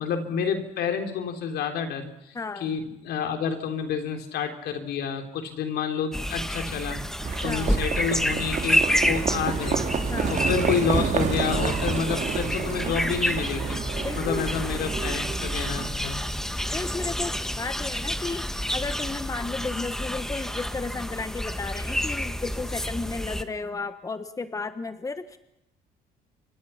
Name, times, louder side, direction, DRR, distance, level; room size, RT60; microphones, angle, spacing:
voice 1, 0.0-7.0 7.4-9.8 10.3-13.8 14.1-16.2, left 6 dB, 70° left, 6 dB, 3.8 m, -29 dB
voice 2, 2.3-2.7 7.4-7.7 10.1-10.4 14.0-14.5 16.7-25.4, left 3 dB, 20° left, 11 dB, 1.3 m, -33 dB
sound 1, 6.1-23.4, equal, 5° left, 1.6 m, -29 dB
Livestock farm animals working animals, 7.2-15.9, right 6 dB, 45° right, 3.3 m, -29 dB
28.5 x 25.0 x 5.9 m, 0.88 s
cardioid pair, 110°, 17 cm